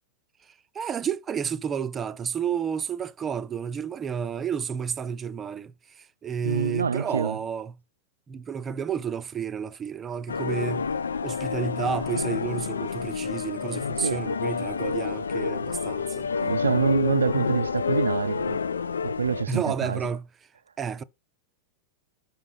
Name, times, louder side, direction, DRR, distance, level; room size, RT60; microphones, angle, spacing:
voice 1, 0.5-7.7 8.3-10.9 11.2-16.3 19.5-20.3 20.8-21.0, right 7 dB, 20° right, 0.5 m, -31 dB
voice 2, 6.4-7.4 14.0-14.3 16.4-18.7 19.0-20.0, right 6 dB, 70° right, 0.4 m, -26 dB
sound 1, 10.3-19.4, left 5 dB, 70° left, 0.3 m, -29 dB
6.1 x 5.1 x 5.5 m
figure-of-eight pair, 90°, 0 cm